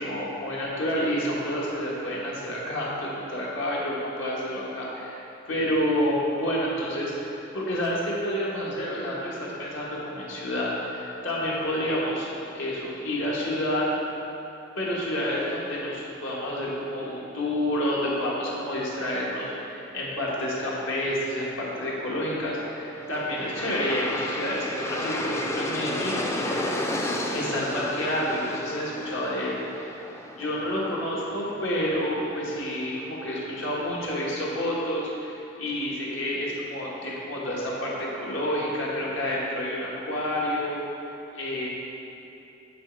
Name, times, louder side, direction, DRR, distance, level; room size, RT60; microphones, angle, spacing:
voice 1, 0.0-12.3 12.5-13.9 14.8-26.2 27.3-30.0 30.4-40.8 41.3-41.7, equal, 70° left, -5 dB, 1.4 m, -29 dB
Aircraft, 22.5-33.6, left 1 dB, 15° left, 0.4 m, -33 dB
7.5 x 4.0 x 4.5 m, 2.9 s
head